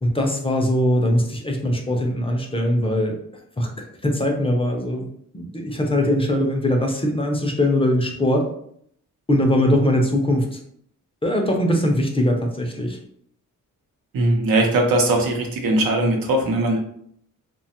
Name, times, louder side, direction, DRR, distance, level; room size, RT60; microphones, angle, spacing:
voice 1, 0.0-3.2 3.6-3.7 4.0-5.1 5.3-8.5 9.3-10.6 11.2-13.0, left 1 dB, 15° left, 1 dB, 0.4 m, -21 dB
voice 2, 14.1-16.8, right 1 dB, 90° right, 2 dB, 0.7 m, -20 dB
2.8 x 2.2 x 2.8 m, 0.67 s
cardioid pair, 120°, 34 cm